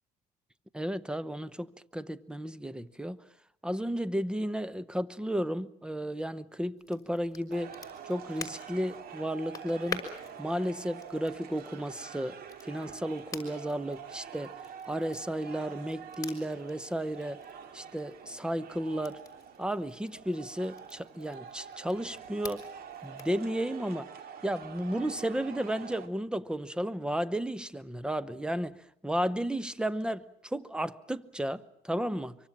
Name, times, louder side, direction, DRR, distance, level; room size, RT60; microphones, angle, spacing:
voice 1, 0.7-3.2 3.6-7.8 8.0-10.1 10.4-14.6 14.8-17.4 17.7-19.2 19.6-22.7 23.0-24.1 24.4-32.4, right 1 dB, 5° right, 0.9 m, -33 dB
Crackle, 6.8-23.4, left 5 dB, 20° left, 5.4 m, -48 dB
sound 1, 7.5-26.1, right 7 dB, 65° right, 2.6 m, -47 dB
25.0 x 24.0 x 7.4 m
cardioid pair, 110°, 17 cm